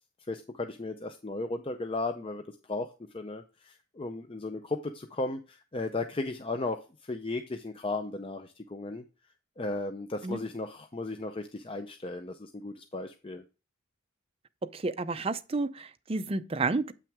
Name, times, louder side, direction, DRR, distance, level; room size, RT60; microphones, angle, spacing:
voice 1, 0.3-9.0 9.6-13.4, left 2 dB, 25° left, 0.5 m, -35 dB
voice 2, 14.7-16.9, right 3 dB, 30° right, 0.5 m, -31 dB
8.3 x 5.9 x 3.5 m
head